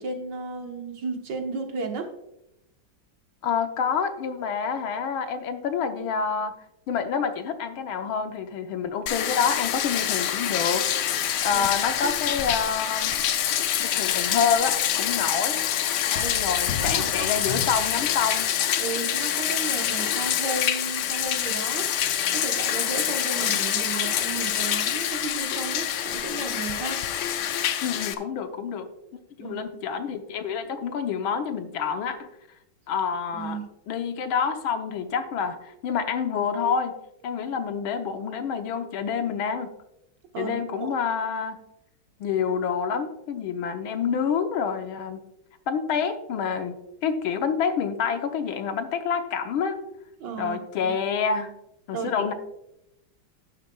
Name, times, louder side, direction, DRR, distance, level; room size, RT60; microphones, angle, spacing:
voice 1, 0.0-2.1 11.5-11.7 16.2-16.3 16.7-17.4 18.8-21.9 22.3-27.0 29.4-29.6 33.3-33.6 40.3-40.9 50.2-50.9 51.9-52.1, right 4 dB, 60° right, 3 dB, 1.8 m, -34 dB
voice 2, 3.4-6.5 6.9-11.2 11.4-13.1 13.8-15.6 16.1-18.5 27.8-28.9 29.4-32.3 32.9-33.6 33.9-36.9 37.2-39.7 40.4-41.6 42.2-45.2 45.7-49.8 50.4-51.5 51.9-52.3, left 6 dB, 85° left, 7 dB, 1.8 m, -27 dB
Bathtub (filling or washing), 9.1-28.1, left 10 dB, 70° left, 1.2 m, -26 dB
11.0 x 11.0 x 2.3 m, 0.85 s
omnidirectional pair, 2.2 m